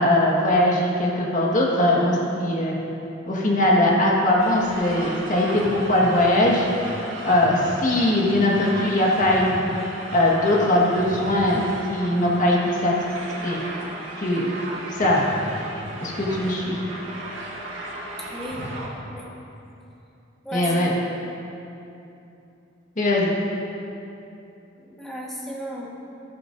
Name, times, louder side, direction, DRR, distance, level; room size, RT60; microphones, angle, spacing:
voice 1, 0.0-2.7 3.3-6.7 7.2-9.8 10.1-11.6 11.9-12.9 13.4-13.6 14.2-14.5 14.9-15.3 16.0-16.8 20.5-20.9 23.0-23.3, left 1 dB, 40° left, -3 dB, 1.6 m, -20 dB
sound 1, 4.4-18.9, right 1 dB, 85° right, 1.7 m, -35 dB
voice 2, 18.3-18.7 19.1-19.3 20.4-20.7 24.8-25.9, equal, ahead, -5 dB, 1.5 m, -34 dB
14.0 x 11.0 x 2.7 m, 2.9 s
head